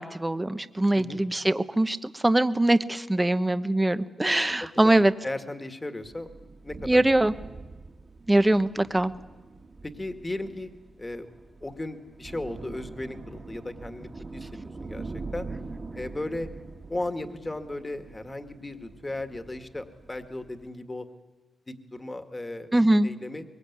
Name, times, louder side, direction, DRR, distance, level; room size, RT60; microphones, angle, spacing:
voice 1, 0.0-5.1 6.9-7.3 8.3-9.1 22.7-23.1, right 1 dB, 15° right, 11 dB, 1.0 m, -22 dB
voice 2, 4.6-4.9 5.2-6.3 6.6-7.1 9.8-10.7 11.0-11.3 11.6-15.5 16.0-16.5 16.9-21.1 21.7-22.7 23.0-23.4, left 2 dB, 20° left, 7 dB, 1.9 m, -36 dB
sound 1, 6.0-20.7, right 3 dB, 35° right, 2.0 m, -43 dB
23.5 x 22.5 x 9.6 m, 1.3 s
cardioid pair, 105°, 0 cm